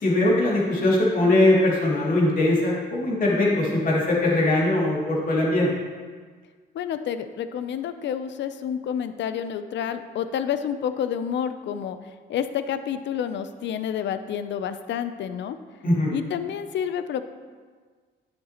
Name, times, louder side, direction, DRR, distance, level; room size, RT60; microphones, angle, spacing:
voice 1, 0.0-5.7 15.8-16.1, left 1 dB, 45° left, -4 dB, 2.5 m, -21 dB
voice 2, 6.7-12.0 12.3-15.6 16.1-17.2, left 8 dB, 65° left, 11 dB, 0.5 m, -29 dB
9.9 x 6.5 x 2.9 m, 1.5 s
cardioid pair, 90°, 20 cm